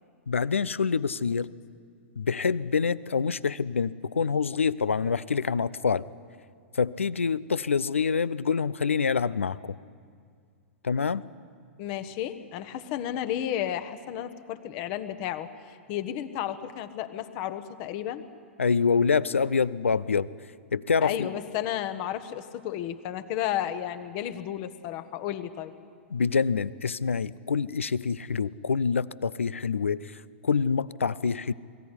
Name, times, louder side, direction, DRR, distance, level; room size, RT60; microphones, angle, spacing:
voice 1, 0.3-1.5 2.2-6.0 6.7-9.8 10.8-11.2 18.6-20.3 20.7-21.3 26.1-30.1 30.4-31.5, left 5 dB, 80° left, 19 dB, 0.5 m, -26 dB
voice 2, 11.8-18.2 21.0-25.7, left 11 dB, 45° left, 10 dB, 1.3 m, -33 dB
22.0 x 15.5 x 10.0 m, 2.2 s
figure-of-eight pair, 100°, 7 cm